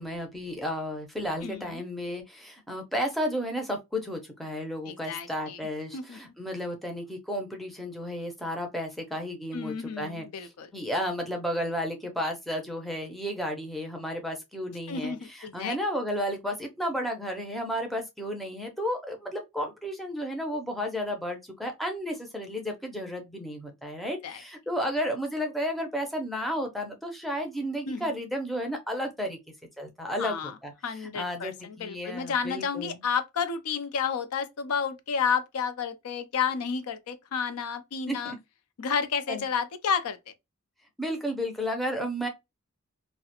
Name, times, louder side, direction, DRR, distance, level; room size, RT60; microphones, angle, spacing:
voice 1, 0.0-29.4 29.8-30.4 30.6-30.7 31.0-33.0 38.1-38.4 39.3-39.4 41.0-42.3, equal, ahead, 0.4 m, -33 dB
voice 2, 1.4-1.8 4.9-5.6 5.9-6.2 9.5-10.7 14.9-15.8 24.2-24.4 27.9-28.1 30.2-30.5 30.8-38.3 38.8-40.2, left 6 dB, 90° left, 0.4 m, -31 dB
2.3 x 2.1 x 2.8 m
head